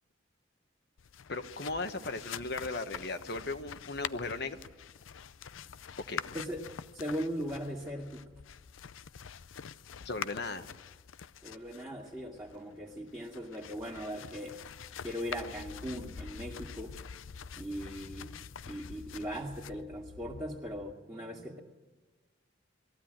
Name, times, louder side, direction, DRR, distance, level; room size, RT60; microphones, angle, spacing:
sound 1, 1.0-20.9, left 7 dB, 90° left, 0.5 m, -46 dB
voice 1, 1.3-4.6 6.1-6.2 10.0-10.6, left 3 dB, 55° left, 9 dB, 1.2 m, -37 dB
voice 2, 6.3-8.2 11.4-14.6 15.0-17.0 17.6-18.4 18.7-21.6, equal, 10° right, -5 dB, 2.2 m, -39 dB
21.0 x 15.0 x 9.0 m, 1.3 s
head